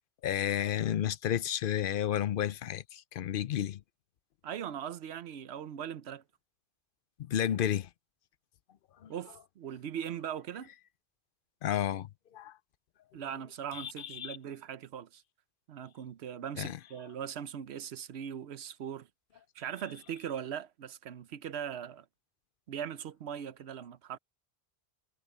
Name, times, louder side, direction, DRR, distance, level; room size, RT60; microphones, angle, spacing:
voice 1, 0.2-3.8 7.2-7.9 9.0-9.1 11.6-12.6 13.7-14.4 16.6-16.8, left 10 dB, 60° left, 0.7 m, -32 dB
voice 2, 4.4-6.2 9.1-10.7 13.1-15.2 15.7-19.1 19.5-22.1 22.7-24.2, right 9 dB, 75° right, 1.0 m, -40 dB
omnidirectional pair, 1.1 m